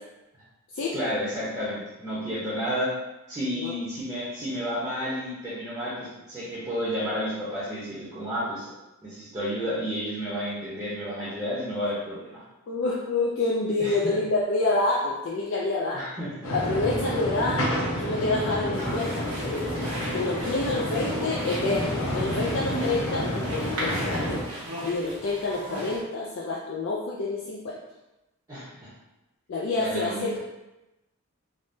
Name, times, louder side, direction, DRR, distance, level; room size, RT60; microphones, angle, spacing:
voice 1, 0.9-2.9 3.3-8.7 9.0-12.4 13.8-14.2 15.9-16.3 28.5-28.9 29.7-30.4, equal, 20° right, -11 dB, 0.7 m, -31 dB
voice 2, 12.7-16.1 16.5-17.7 18.0-19.7 20.1-24.5 24.8-27.8 29.5-30.4, left 3 dB, 55° left, -4 dB, 0.3 m, -28 dB
sound 1, 16.4-24.4, equal, 75° left, 0.8 m, -29 dB
sound 2, 18.7-26.0, equal, 85° right, 0.9 m, -37 dB
3.4 x 2.1 x 2.6 m, 1.0 s
head